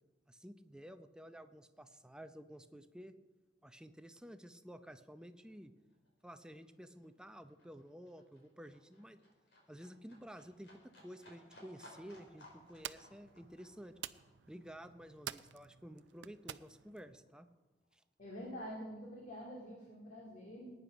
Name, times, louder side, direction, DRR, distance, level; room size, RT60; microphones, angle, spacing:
voice 1, 0.3-3.1 3.6-5.7 6.2-9.2 9.7-14.0 14.5-17.5 17.9-18.0, equal, 5° right, 9 dB, 0.6 m, -52 dB
Livestock farm animals working animals, 4.8-4.9 5.2-16.2 16.5-17.5 17.8-17.9, left 1 dB, 70° left, 4.7 m, -62 dB
sound 1, 11.9-17.2, right 11 dB, 75° right, 0.5 m, -51 dB
voice 2, 18.2-20.7, equal, 45° left, -3 dB, 2.4 m, -47 dB
20.0 x 9.6 x 5.1 m, 1.3 s
head